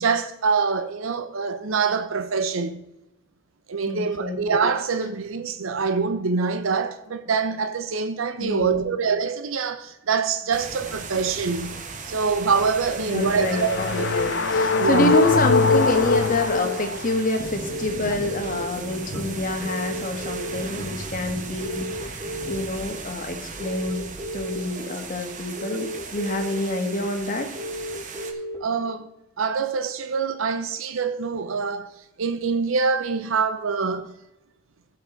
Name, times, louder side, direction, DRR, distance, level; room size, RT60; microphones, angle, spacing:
voice 1, 0.0-2.8 3.7-11.8 12.1-14.1 14.8-15.1 28.6-29.1 29.4-31.9 32.2-34.1, right 5 dB, 85° right, 0.6 m, -25 dB
voice 2, 3.9-4.4 8.4-9.0 13.1-24.0 24.3-27.5, left 2 dB, 45° left, 1.4 m, -27 dB
sound 1, 10.5-28.3, right 3 dB, 40° right, 1.2 m, -37 dB
sound 2, 13.0-17.4, left 3 dB, 60° left, 0.6 m, -22 dB
sound 3, 16.3-16.7 17.6-18.6 19.6-20.6 21.6-22.6 23.6-24.6 25.6-26.6 27.5-28.6, equal, 25° right, 3.9 m, -33 dB
16.0 x 5.8 x 3.9 m
head